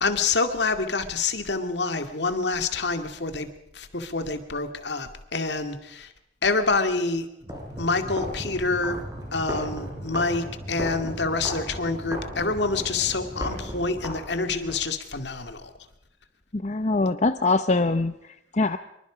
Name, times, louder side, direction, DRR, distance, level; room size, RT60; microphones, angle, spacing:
voice 1, 0.0-3.5 3.7-6.1 6.4-7.3 7.8-9.0 9.3-15.7, left 3 dB, 65° left, 8 dB, 2.1 m, -27 dB
sound 1, 7.4-14.8, equal, 20° right, 6.4 m, -36 dB
voice 2, 16.5-18.8, left 3 dB, 40° left, 9 dB, 0.7 m, -23 dB
25.5 x 24.0 x 5.0 m, 0.80 s
head